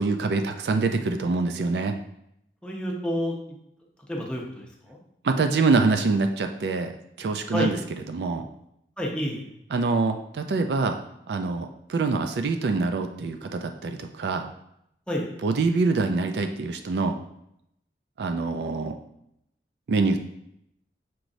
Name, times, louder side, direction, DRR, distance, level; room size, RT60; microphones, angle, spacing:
voice 1, 0.0-1.9 5.2-6.9 7.2-7.8 8.1-8.5 9.7-11.0 11.3-14.5 15.4-17.2 18.2-18.9 19.9-20.2, right 3 dB, 70° right, 6 dB, 0.4 m, -25 dB
voice 2, 2.6-3.4 4.1-5.0 7.5-7.7 9.0-9.5 15.1-15.3, equal, 5° left, -2 dB, 0.6 m, -29 dB
5.9 x 3.1 x 2.6 m, 0.78 s
head